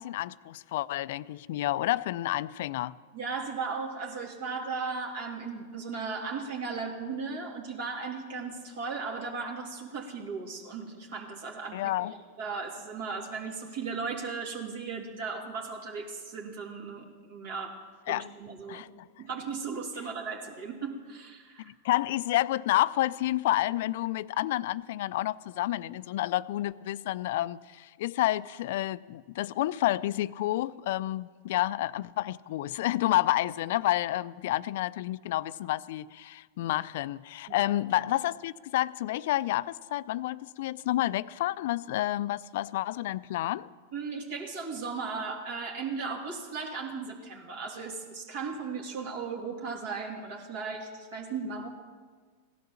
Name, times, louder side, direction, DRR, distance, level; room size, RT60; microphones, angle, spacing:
voice 1, 0.0-3.0 11.7-12.1 18.1-18.3 18.7-18.9 21.7-43.7, left 15 dB, 65° left, 0.4 m, -29 dB
voice 2, 3.1-17.8 18.1-18.8 19.2-21.7 37.5-37.7 43.9-51.7, right 4 dB, 65° right, 2.8 m, -36 dB
16.5 x 11.0 x 7.2 m
hypercardioid pair, 110°, 0 cm